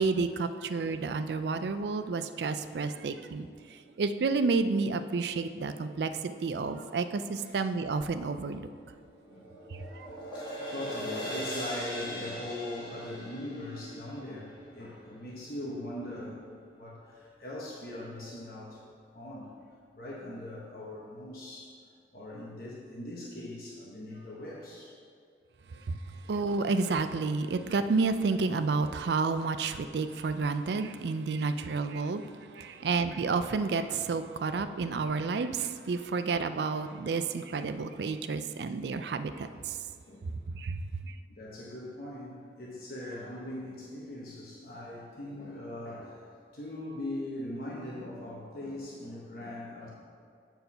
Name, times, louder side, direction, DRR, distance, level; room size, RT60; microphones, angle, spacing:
voice 1, 0.0-3.5 4.0-8.7 9.7-9.8 25.9-26.0 26.3-32.2 32.5-39.8 40.5-40.8 41.1-41.2, right 4 dB, 70° right, 10 dB, 0.4 m, -30 dB
voice 2, 2.6-3.2 7.4-7.5 9.1-16.5 16.7-18.8 19.1-19.5 19.9-21.7 22.1-24.9 26.1-26.2 32.7-32.9 40.1-40.3 41.0-49.9, left 1 dB, 55° left, -5 dB, 1.1 m, -41 dB
sound 1, 8.7-15.1, equal, 25° left, 1.6 m, -40 dB
7.9 x 4.6 x 5.5 m, 2.2 s
head